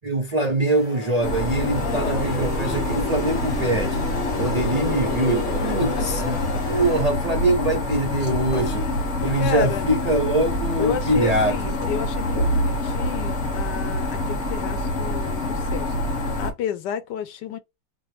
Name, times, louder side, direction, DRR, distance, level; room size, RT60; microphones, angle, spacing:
voice 1, 0.0-4.0 4.4-8.8 9.2-11.7, right 2 dB, 75° right, 0.3 m, -23 dB
sound 1, 0.7-7.0, left 2 dB, 65° left, 2.3 m, -32 dB
sound 2, 1.2-16.5, left 1 dB, 45° left, 1.3 m, -26 dB
voice 2, 1.7-2.3 5.4-6.9 8.5-9.0 9.4-9.9 10.8-17.6, left 8 dB, 90° left, 1.3 m, -32 dB
5.0 x 2.1 x 3.2 m
omnidirectional pair, 1.8 m